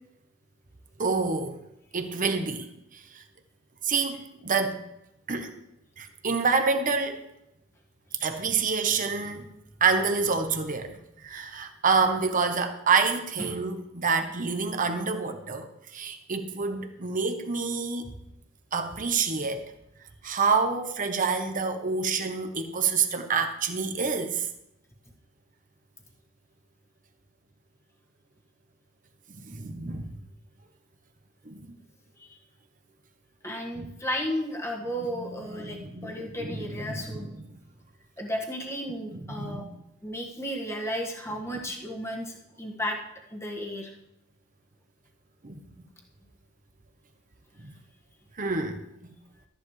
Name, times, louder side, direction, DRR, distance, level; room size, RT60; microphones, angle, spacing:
voice 1, 1.0-1.6 1.9-3.2 3.8-4.8 5.3-5.5 6.0-7.2 8.2-9.5 9.8-18.1 18.7-19.7 20.2-24.5 29.3-30.1 31.4-31.8 33.8-33.9 35.2-35.4 35.6-37.5 39.1-39.6 45.4-45.6 47.6-47.7 48.4-49.1, right 5 dB, 40° right, 7 dB, 1.0 m, -28 dB
voice 2, 33.4-37.3 38.2-39.7 40.0-43.0 43.3-43.9, equal, 15° left, -1 dB, 1.8 m, -34 dB
13.5 x 10.0 x 3.3 m, 0.83 s
head